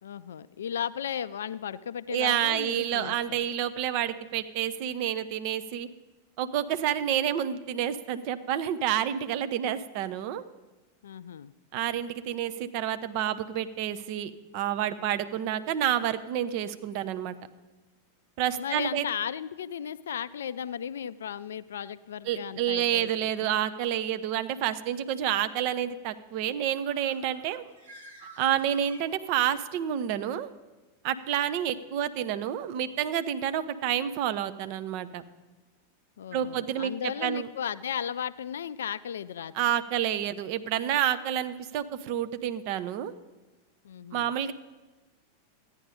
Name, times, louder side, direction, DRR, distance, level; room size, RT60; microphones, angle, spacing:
voice 1, 0.0-3.4 11.0-11.5 18.6-23.5 36.2-39.5 43.8-44.3, left 8 dB, 65° left, 16 dB, 0.3 m, -35 dB
voice 2, 2.1-5.9 6.4-10.4 11.7-17.4 18.4-19.0 22.3-27.6 28.4-30.5 31.0-35.2 36.3-37.5 39.5-43.1 44.1-44.5, right 10 dB, 45° right, 11 dB, 0.6 m, -29 dB
Bird, 26.6-29.6, right 1 dB, 65° right, 2.7 m, -51 dB
13.5 x 9.8 x 5.2 m, 1.2 s
figure-of-eight pair, 90°, 0 cm